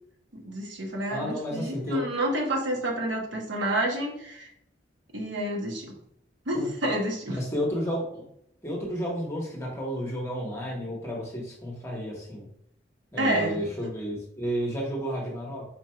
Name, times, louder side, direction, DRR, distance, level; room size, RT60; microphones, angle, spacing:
voice 1, 0.3-4.5 5.1-5.9 6.5-7.4 13.2-13.6, right 1 dB, 75° right, 0 dB, 1.1 m, -29 dB
voice 2, 1.1-2.0 6.5-6.7 7.3-8.3 8.6-12.5 13.1-15.6, equal, 15° left, -3 dB, 1.0 m, -32 dB
4.4 x 2.4 x 4.3 m, 0.72 s
head